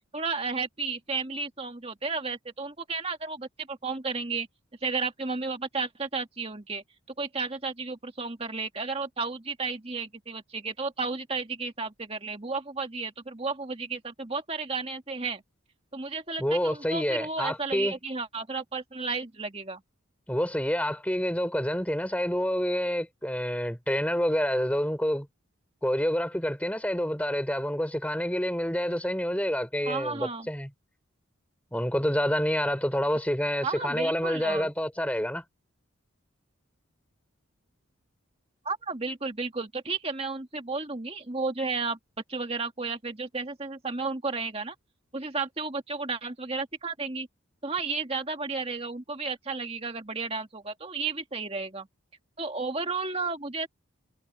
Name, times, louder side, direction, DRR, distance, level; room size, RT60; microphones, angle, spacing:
voice 1, 0.1-4.5 4.8-6.8 7.2-15.4 15.9-19.8 29.9-30.5 33.6-34.7 38.7-42.0 42.3-44.7 45.1-47.3 47.6-51.9 52.4-53.7, right 4 dB, 25° right, 2.0 m, -33 dB
voice 2, 16.4-18.0 20.3-25.3 25.8-30.7 31.7-35.4, equal, 5° left, 5.1 m, -28 dB
head